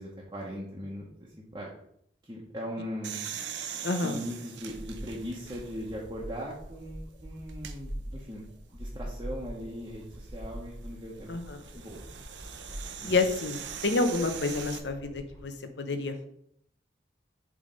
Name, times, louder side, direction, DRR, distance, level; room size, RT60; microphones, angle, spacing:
voice 1, 0.0-1.8 2.2-3.2 4.0-8.5 8.7-11.3 11.7-12.1 13.0-13.2, equal, 20° right, -4 dB, 1.1 m, -39 dB
sound 1, 3.0-6.0 6.5-6.6 7.5-7.8 9.9-14.8, right 8 dB, 85° right, 0.8 m, -41 dB
voice 2, 3.8-4.2 11.3-11.6 13.0-16.3, left 3 dB, 75° left, 7 dB, 0.9 m, -29 dB
sound 2, 4.6-15.4, equal, 35° left, 2.2 m, -44 dB
7.3 x 3.4 x 5.3 m, 0.69 s
head